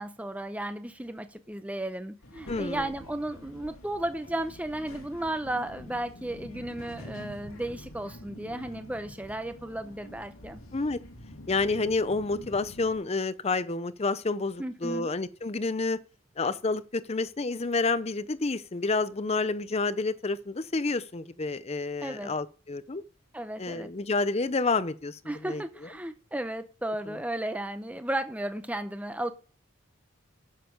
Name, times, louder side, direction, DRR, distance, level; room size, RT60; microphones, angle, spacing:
voice 1, 0.0-10.6 14.6-15.1 22.0-22.3 23.3-23.9 25.3-29.3, right 1 dB, 5° right, 0.7 m, -34 dB
Child speech kid speaking, 2.2-13.0, left 1 dB, 80° left, 2.1 m, -46 dB
voice 2, 2.5-2.8 10.7-11.0 11.5-16.0 16.4-23.0 23.6-25.6 27.1-27.2, left 3 dB, 30° left, 0.5 m, -29 dB
9.1 x 7.5 x 5.1 m
head